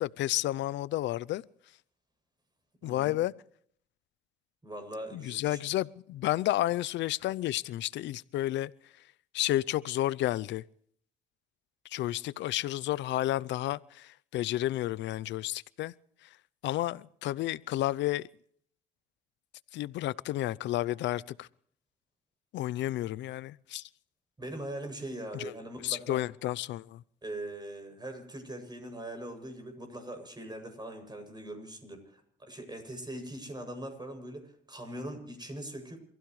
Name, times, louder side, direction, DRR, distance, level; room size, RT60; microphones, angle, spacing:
voice 1, 0.0-1.4 2.8-3.3 5.1-8.7 9.3-10.6 11.9-15.9 16.6-18.3 19.7-21.5 22.5-23.9 25.3-25.5 25.8-27.0, left 15 dB, 75° left, 0.6 m, -31 dB
voice 2, 2.8-3.2 4.6-5.6 24.4-26.2 27.2-36.0, right 1 dB, 20° right, 7.6 m, -41 dB
28.5 x 15.5 x 3.2 m
supercardioid pair, 65°, 19 cm